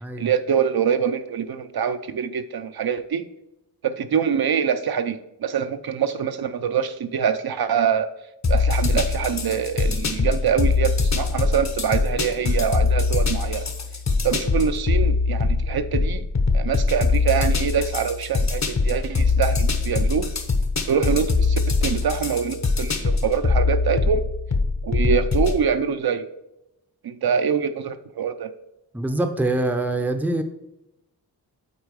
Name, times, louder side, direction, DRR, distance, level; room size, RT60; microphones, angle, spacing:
voice 1, 0.2-3.2 3.8-8.1 8.5-13.7 14.2-16.2 16.5-20.3 20.9-24.3 24.8-26.3 27.0-28.5, right 7 dB, 65° right, 9 dB, 0.7 m, -24 dB
sound 1, 8.4-25.6, left 4 dB, 45° left, 1.0 m, -22 dB
voice 2, 28.9-30.4, right 2 dB, 5° right, 7 dB, 0.6 m, -24 dB
8.3 x 4.6 x 4.8 m, 0.88 s
wide cardioid pair, 175°, 39 cm